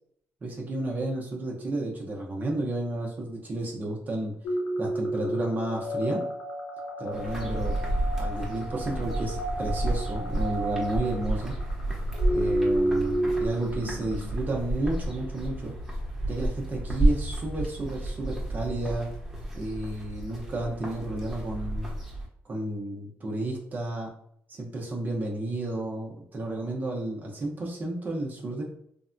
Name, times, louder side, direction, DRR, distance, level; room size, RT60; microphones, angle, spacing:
voice 1, 0.4-4.4 4.8-6.3 7.0-7.8 8.2-11.6 12.3-15.7 16.3-19.1 19.5-21.9 22.4-24.1 24.5-28.6, right 2 dB, 40° right, -2 dB, 0.7 m, -32 dB
sound 1, 4.4-14.3, right 1 dB, 90° left, 0.5 m, -31 dB
sound 2, 7.1-22.3, right 1 dB, 5° right, 1.0 m, -31 dB
3.3 x 2.1 x 2.5 m, 0.68 s
cardioid pair, 95°, 5 cm